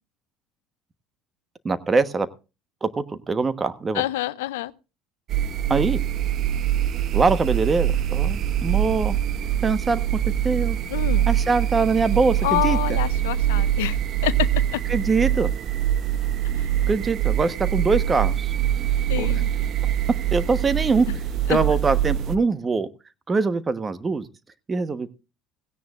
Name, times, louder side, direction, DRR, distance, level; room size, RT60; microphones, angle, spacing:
voice 1, 1.6-2.3 2.8-4.0 5.7-6.0 7.1-9.2 9.6-10.0 10.4-10.8 11.3-12.8 14.9-15.5 16.9-18.5 19.2-19.3 20.3-21.1 21.5-22.9 23.3-24.3 24.7-25.1, right 4 dB, 25° right, 1.2 m, -23 dB
voice 2, 3.9-4.7 10.9-11.3 12.4-14.8 16.6-16.7 19.1-19.5 21.5-21.6, left 16 dB, 80° left, 0.6 m, -27 dB
sound 1, 5.3-22.4, right 11 dB, 50° right, 0.9 m, -24 dB
16.5 x 16.5 x 2.5 m
hypercardioid pair, 70°, 0 cm